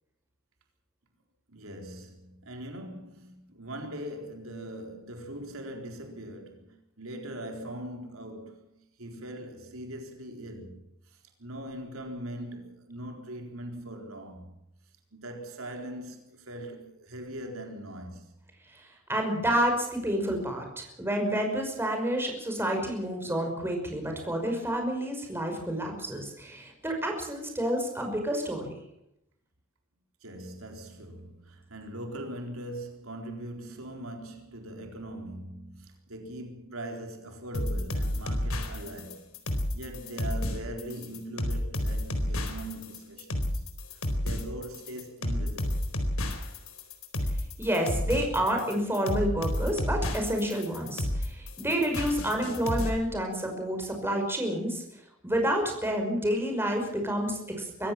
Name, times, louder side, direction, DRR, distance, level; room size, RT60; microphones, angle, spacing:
voice 1, 1.5-14.5 15.1-18.3 30.2-43.7 44.2-45.8, right 1 dB, 80° right, 4.1 m, -41 dB
voice 2, 18.7-28.7 47.6-54.8 55.2-57.9, equal, 10° right, 5.6 m, -29 dB
sound 1, 37.5-52.9, left 1 dB, 85° left, 4.2 m, -31 dB
24.5 x 15.5 x 7.5 m
head